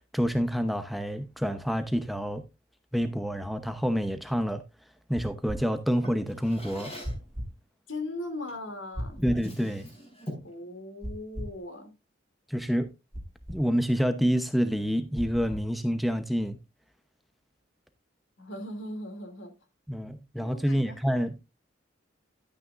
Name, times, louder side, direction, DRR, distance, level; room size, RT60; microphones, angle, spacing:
voice 1, 0.0-2.4 2.9-4.6 5.1-6.9 9.2-9.9 12.5-12.9 13.5-16.6 19.9-21.5, equal, ahead, 0.8 m, -28 dB
sound 1, 5.1-5.6 7.0-7.5 8.9-9.4 11.0-11.6 13.1-13.6 15.1-15.7, equal, 35° right, 1.7 m, -36 dB
Drawer open or close, 6.0-7.3 8.5-8.7 9.1-10.6, equal, 30° left, 5.5 m, -42 dB
voice 2, 7.9-9.2 10.4-11.9 18.4-19.5 20.4-21.0, left 2 dB, 80° left, 2.7 m, -38 dB
12.5 x 9.3 x 2.5 m
head